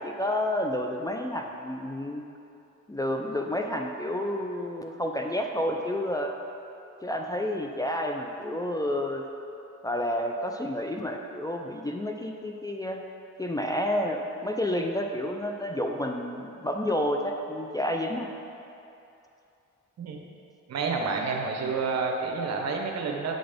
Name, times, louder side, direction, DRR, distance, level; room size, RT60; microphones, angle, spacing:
voice 1, 0.0-2.2 2.9-6.3 7.0-9.2 9.8-13.0 13.4-18.3, left 1 dB, 10° left, 2 dB, 0.4 m, -30 dB
voice 2, 20.7-23.4, right 4 dB, 60° right, 2 dB, 1.0 m, -29 dB
7.8 x 4.0 x 5.1 m, 2.7 s
cardioid pair, 90°, 30 cm